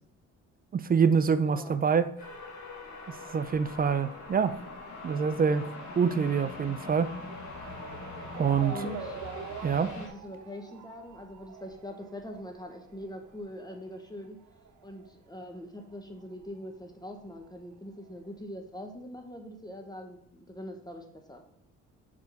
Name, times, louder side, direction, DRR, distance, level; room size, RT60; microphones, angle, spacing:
voice 1, 0.7-2.1 3.1-4.6 5.0-5.6 5.9-7.1 8.4-8.7 9.6-9.9, right 6 dB, 30° right, 0.4 m, -26 dB
voice 2, 1.4-1.8 8.6-9.2 9.8-14.4 14.8-21.4, left 1 dB, 15° left, 1.0 m, -43 dB
sound 1, 2.2-10.1, left 3 dB, 70° left, 1.6 m, -43 dB
Motor vehicle (road) / Siren, 2.9-15.9 16.2-17.4 18.0-18.1 18.4-18.5, right 7 dB, 75° right, 0.9 m, -46 dB
4.9 x 4.7 x 5.5 m
cardioid pair, 90°, 30 cm